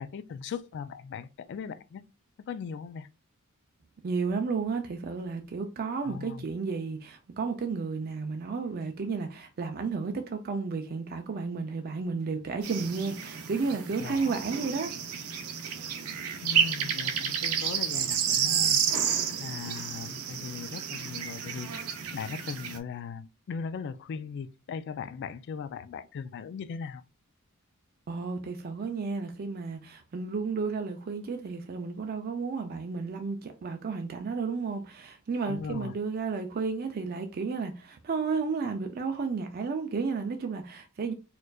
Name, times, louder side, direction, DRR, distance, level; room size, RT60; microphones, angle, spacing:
voice 1, 0.0-2.0 2.5-3.1 6.0-6.4 14.0-14.3 16.4-18.8 19.4-21.7 22.1-27.0 35.4-35.9, left 6 dB, 55° left, 0.3 m, -38 dB
voice 2, 4.0-14.9 28.1-41.1, right 4 dB, 45° right, 0.4 m, -32 dB
sound 1, 12.6-22.8, right 8 dB, 90° right, 0.6 m, -30 dB
4.4 x 2.4 x 2.3 m
head